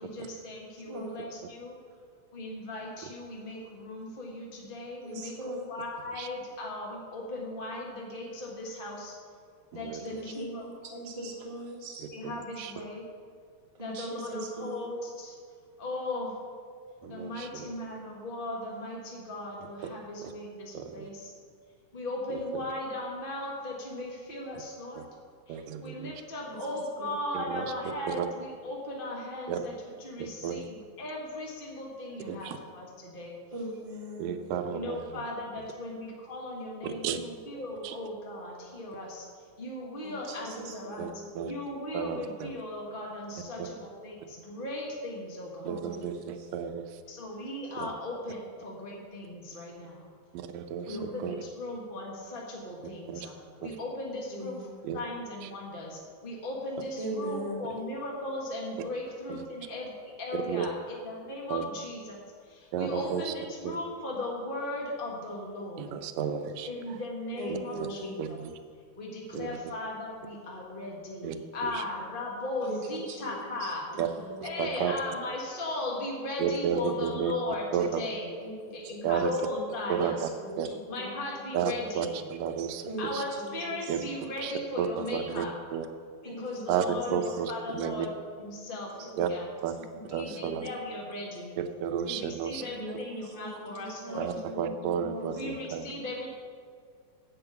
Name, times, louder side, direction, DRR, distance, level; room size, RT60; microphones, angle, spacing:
voice 1, 0.0-1.8 2.3-9.2 9.7-10.6 11.1-11.3 12.1-13.0 13.8-15.4 15.8-16.4 17.1-21.3 21.9-25.0 25.5-33.4 34.7-39.3 39.6-41.0 41.4-45.7 47.1-50.1 50.8-53.3 53.6-66.0 66.6-68.4 69.0-73.8 74.4-78.4 78.7-80.2 80.9-82.3 83.0-85.6 86.2-88.1 88.4-89.5 90.1-91.5 92.0-94.3 95.3-96.3, left 1 dB, 35° left, -2 dB, 0.8 m, -37 dB
voice 2, 0.8-1.2 5.0-5.7 10.0-12.0 13.8-14.9 26.7-27.1 33.5-34.5 40.0-41.3 45.6-46.5 50.9-51.3 54.3-54.8 57.0-57.7 67.4-68.2 72.6-73.3 73.6-74.6 78.4-78.5 78.8-81.2 82.8-83.5 86.2-87.4 88.7-88.8 89.1-89.2 89.7-90.8 92.7-95.6, right 1 dB, 20° right, -2 dB, 1.0 m, -40 dB
voice 3, 17.0-17.5 20.7-21.1 25.0-25.1 25.5-26.1 27.3-27.7 28.1-28.3 29.5-29.6 30.2-30.6 32.3-32.6 34.2-35.0 36.8-37.2 37.8-37.9 41.0-41.1 41.4-41.5 41.9-42.5 45.7-46.8 47.8-47.9 50.3-51.0 51.2-51.4 53.1-53.3 53.6-53.7 54.8-55.0 59.3-59.4 60.5-60.7 61.5-61.6 62.7-63.3 63.6-63.8 65.8-66.7 67.5-67.9 68.2-68.5 69.3-69.5 71.2-71.4 71.6-71.8 74.0-74.1 74.6-74.9 76.4-77.3 77.7-78.0 79.0-79.3 80.0-80.3 80.6-80.7 81.5-83.2 83.9-84.0 84.4-84.5 84.8-85.5 85.7-85.9 86.7-86.9 87.1-88.1 89.2-89.3 89.6-89.7 90.1-90.7 91.6-92.6 94.2-95.8, right 8 dB, 75° right, 8 dB, 1.8 m, -32 dB
9.6 x 8.3 x 6.9 m, 2.2 s
omnidirectional pair, 3.4 m